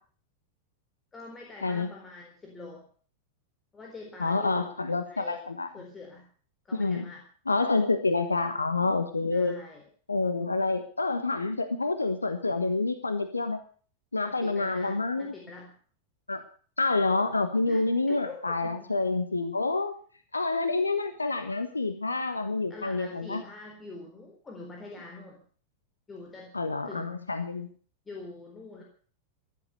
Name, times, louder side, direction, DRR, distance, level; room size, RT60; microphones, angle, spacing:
voice 1, 1.1-2.9 3.7-5.4 5.7-6.3 6.6-7.2 9.3-9.8 14.3-15.7 17.7-18.9 22.7-25.4 26.1-26.5 26.9-27.1 28.1-28.8, left 3 dB, 15° left, 0 dB, 4.0 m, -45 dB
voice 2, 4.2-5.7 6.7-7.1 7.5-9.5 10.1-13.6 14.1-15.3 16.3-16.4 16.8-20.0 20.3-23.4 26.5-27.7, left 3 dB, 80° left, 9 dB, 1.3 m, -28 dB
15.5 x 11.5 x 6.6 m, 0.43 s
figure-of-eight pair, 90°, 0 cm